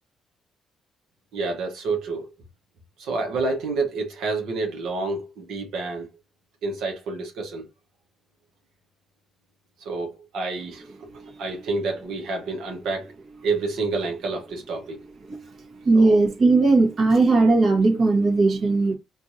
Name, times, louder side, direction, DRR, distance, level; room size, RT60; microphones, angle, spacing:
voice 1, 1.3-2.3 3.0-6.1 6.6-7.7 9.8-10.9 11.4-13.1 13.4-15.0 15.9-16.2, right 3 dB, 85° right, 1.1 m, -28 dB
voice 2, 15.8-19.0, right 3 dB, 50° right, 1.2 m, -18 dB
4.6 x 2.6 x 2.7 m
cardioid pair, 90°, 0 cm